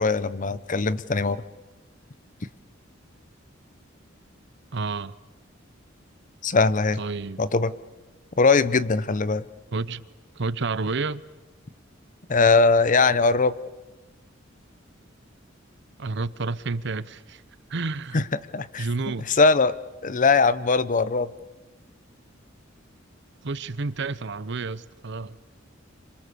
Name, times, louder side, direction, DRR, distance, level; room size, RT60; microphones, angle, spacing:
voice 1, 0.0-1.4 6.4-7.0 7.4-7.7 8.4-9.4 12.3-13.5 18.1-18.2 18.5-18.9 19.3-19.7 20.0-21.3, left 4 dB, 40° left, 0.8 m, -20 dB
voice 2, 4.7-5.1 7.0-7.4 9.7-10.0 10.3-11.2 16.0-17.4 17.7-18.2 18.8-19.3 23.4-25.4, right 3 dB, 60° right, 0.8 m, -30 dB
27.5 x 26.0 x 6.9 m
head